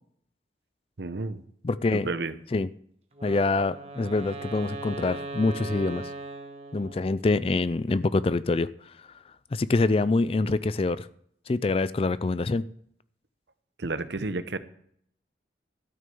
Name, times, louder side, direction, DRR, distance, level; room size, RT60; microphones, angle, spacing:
voice 1, 1.0-1.4 2.0-2.3 13.8-14.6, right 3 dB, 70° right, 12 dB, 0.8 m, -31 dB
voice 2, 1.6-2.1 2.5-2.7 3.2-6.1 6.7-8.7 9.5-11.1 11.5-12.6, left 3 dB, 30° left, 16 dB, 0.4 m, -25 dB
Wind instrument woodwind instrument, 3.1-7.3, right 2 dB, 35° right, 1.2 m, -39 dB
12.5 x 6.5 x 6.9 m, 0.66 s
head